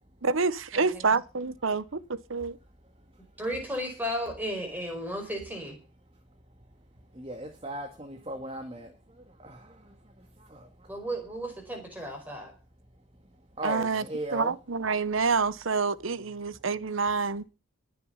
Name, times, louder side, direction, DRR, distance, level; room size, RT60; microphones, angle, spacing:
voice 1, 0.2-2.6 13.6-14.0 14.3-17.4, right 4 dB, 70° right, 0.8 m, -27 dB
voice 2, 0.7-1.1 3.4-5.8 10.9-12.5, equal, 10° right, 4.8 m, -34 dB
voice 3, 7.1-10.9 13.6-14.5, right 1 dB, 25° right, 1.9 m, -38 dB
21.0 x 7.0 x 5.6 m
head